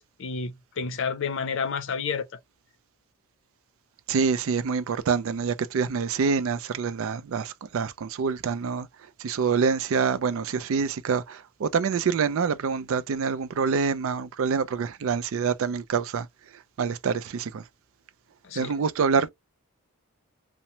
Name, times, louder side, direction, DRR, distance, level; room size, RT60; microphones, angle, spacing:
voice 1, 0.0-2.3 18.4-18.7, left 5 dB, 60° left, 0.5 m, -30 dB
voice 2, 4.1-8.9 9.2-16.3 16.8-17.6 18.6-19.3, right 5 dB, 60° right, 0.4 m, -26 dB
3.0 x 2.1 x 2.6 m
head